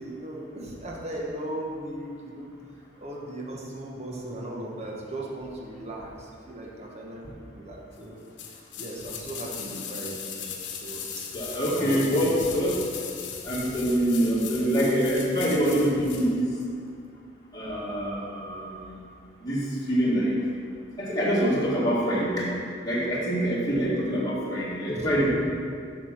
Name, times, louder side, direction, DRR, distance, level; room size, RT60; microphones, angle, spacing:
voice 1, 0.0-2.5 3.0-8.2 8.8-12.4 24.9-25.3, right 1 dB, 35° right, -2 dB, 1.3 m, -38 dB
sound 1, 8.4-16.3 16.6-16.7, left 7 dB, 70° left, 1.0 m, -38 dB
voice 2, 11.3-12.8 13.4-16.5 17.5-19.0 19.4-20.4 21.0-22.5 22.8-25.3, equal, 20° left, -7 dB, 2.0 m, -25 dB
7.4 x 6.1 x 5.9 m, 2.3 s
head